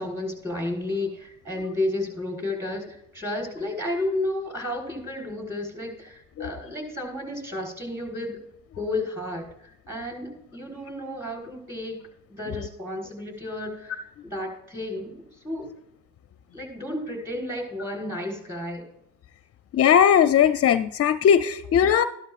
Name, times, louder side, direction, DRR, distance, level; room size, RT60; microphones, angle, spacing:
voice 1, 0.0-8.4 8.8-12.0 12.3-15.7 16.5-18.9, left 1 dB, 10° right, 1 dB, 3.8 m, -32 dB
voice 2, 19.7-22.0, left 8 dB, 50° left, 11 dB, 0.5 m, -19 dB
13.0 x 12.0 x 2.4 m, 0.75 s
cardioid pair, 90°, 30 cm